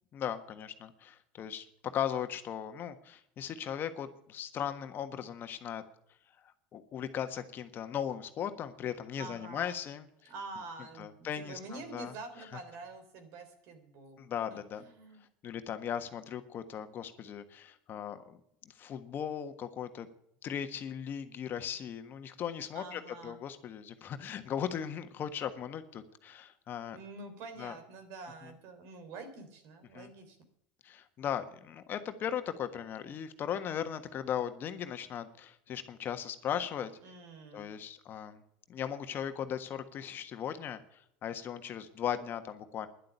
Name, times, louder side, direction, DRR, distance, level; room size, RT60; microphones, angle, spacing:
voice 1, 0.1-1.7 1.9-5.8 6.4-10.3 11.0-12.1 14.2-14.8 15.4-18.4 18.8-20.1 20.4-27.0 27.6-27.7 29.9-30.1 30.8-36.9 37.5-38.4 38.7-42.9, left 9 dB, 45° left, 8 dB, 1.4 m, -38 dB
voice 2, 9.2-9.8 10.3-14.2 14.5-15.2 22.7-23.4 26.9-30.4 37.0-37.8, right 3 dB, 65° right, 7 dB, 3.7 m, -47 dB
11.0 x 7.8 x 9.9 m, 0.72 s
supercardioid pair, 95°, 5 cm